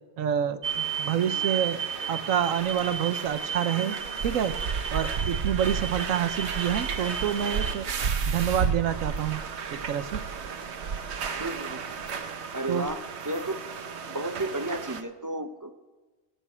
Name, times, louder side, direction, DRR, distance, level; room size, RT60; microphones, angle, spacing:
voice 1, 0.2-4.0 4.2-4.5 4.9-7.9 8.3-9.4 9.7-10.2 12.7-12.9, right 9 dB, 85° right, 12 dB, 1.2 m, -28 dB
sound 1, 0.6-15.0, right 6 dB, 60° right, 1.1 m, -32 dB
voice 2, 11.4-11.8 12.5-13.0 13.2-13.6 14.1-15.7, right 1 dB, 20° right, 7 dB, 0.5 m, -32 dB
24.5 x 8.2 x 4.5 m, 1.3 s
omnidirectional pair, 1.4 m